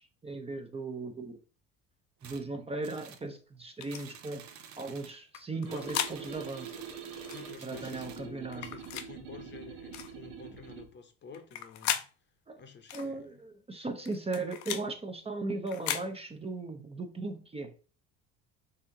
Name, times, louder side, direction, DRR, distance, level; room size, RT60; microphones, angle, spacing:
voice 1, 0.0-1.4 2.2-4.4 4.8-6.8 7.6-8.7 12.5-12.6 12.9-17.7, right 3 dB, 20° right, 0.7 m, -37 dB
sound 1, 2.2-2.4 2.8-3.3 3.9-5.2 5.7-8.3, right 7 dB, 65° right, 0.8 m, -51 dB
sound 2, 3.8-4.0 5.3-6.2 7.2-7.4 8.5-9.1 9.9-10.1 11.3-12.1 12.9-13.1 14.1-14.9 15.7-16.1, left 10 dB, 90° left, 0.6 m, -36 dB
sound 3, 5.7-10.9, right 6 dB, 90° right, 1.6 m, -45 dB
voice 2, 7.3-12.0 12.6-13.4, left 5 dB, 35° left, 0.8 m, -50 dB
4.2 x 2.7 x 3.7 m
supercardioid pair, 90°, 32 cm